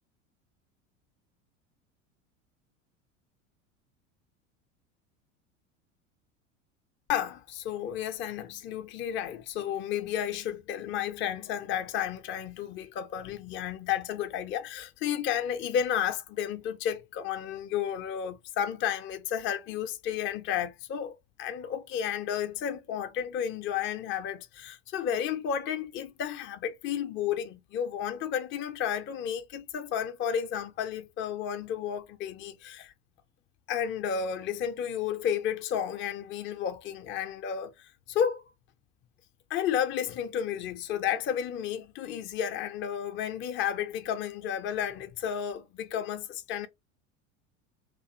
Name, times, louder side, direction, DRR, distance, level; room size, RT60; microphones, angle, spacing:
voice 1, 7.1-32.9 33.7-38.4 39.5-46.7, left 9 dB, 30° left, 0.4 m, -32 dB
2.5 x 2.3 x 2.7 m
hypercardioid pair, 80°, 39 cm